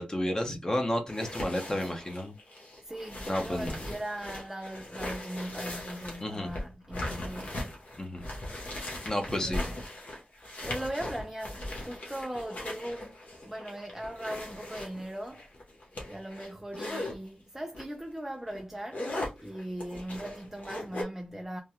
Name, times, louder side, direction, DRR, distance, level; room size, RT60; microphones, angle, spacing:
voice 1, 0.0-2.3 3.3-3.7 6.2-6.5 8.0-8.2 9.0-9.6, left 1 dB, 25° left, 0.8 m, -31 dB
sound 1, 1.1-17.1 17.7-18.0 18.4-21.0, left 1 dB, 60° left, 1.1 m, -39 dB
voice 2, 2.8-7.7 9.3-9.8 10.4-15.5 16.1-19.2 19.4-21.6, right 1 dB, 10° right, 0.4 m, -39 dB
3.4 x 2.2 x 2.9 m
wide cardioid pair, 80°, 3 cm